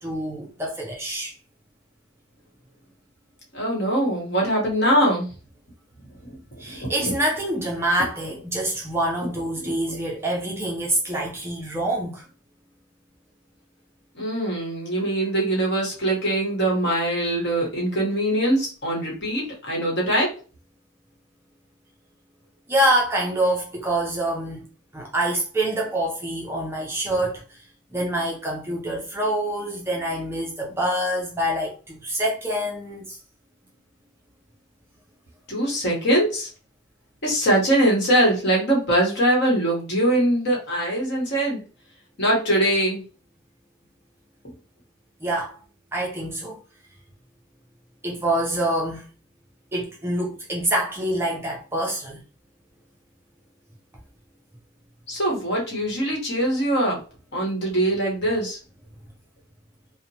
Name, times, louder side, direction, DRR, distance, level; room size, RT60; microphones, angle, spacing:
voice 1, 0.0-1.3 6.6-12.3 22.7-24.6 24.9-27.6 27.9-33.2 45.2-45.6 45.9-46.6 48.0-49.0 49.7-52.2, right 1 dB, 10° right, 0.4 m, -26 dB
voice 2, 3.5-5.3 6.7-6.9 9.6-9.7 14.1-20.3 35.5-36.5 37.2-41.6 42.2-43.0 55.1-57.0 57.3-58.6, right 1 dB, 50° left, 1.0 m, -22 dB
2.8 x 2.0 x 2.7 m
head